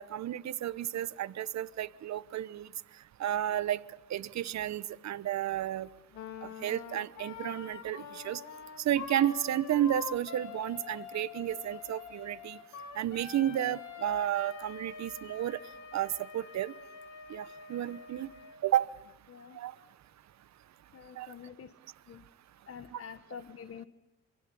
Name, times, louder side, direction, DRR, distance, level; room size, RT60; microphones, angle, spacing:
voice 1, 0.0-2.7 3.2-3.8 4.1-5.9 6.6-8.4 8.8-12.6 13.0-15.6 15.9-16.7 17.3-18.3 18.6-18.9 19.5-19.7 21.2-21.3 22.9-23.0, right 11 dB, 65° right, 16 dB, 1.1 m, -32 dB
Wind instrument woodwind instrument, 6.1-18.6, left 6 dB, 75° left, 3.4 m, -45 dB
voice 2, 20.9-21.7 22.1-22.2 22.7-23.9, left 7 dB, 50° left, 9 dB, 1.4 m, -47 dB
28.0 x 24.0 x 7.1 m, 0.91 s
cardioid pair, 90°, 30 cm